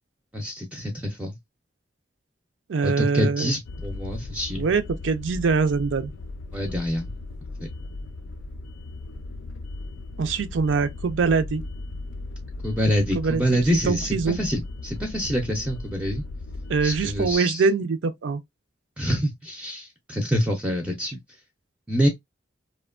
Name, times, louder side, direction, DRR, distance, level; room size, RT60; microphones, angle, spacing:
voice 1, 0.3-1.4 2.8-4.7 6.5-7.1 12.6-16.2 16.8-17.6 19.0-21.2 21.9-22.1, equal, 5° right, 0.4 m, -26 dB
voice 2, 2.7-3.5 4.5-6.1 10.2-11.6 13.1-13.6 13.9-14.4 16.7-18.4, right 4 dB, 85° right, 0.4 m, -23 dB
sound 1, 3.6-17.4, left 2 dB, 85° left, 0.4 m, -37 dB
2.8 x 2.1 x 2.3 m
head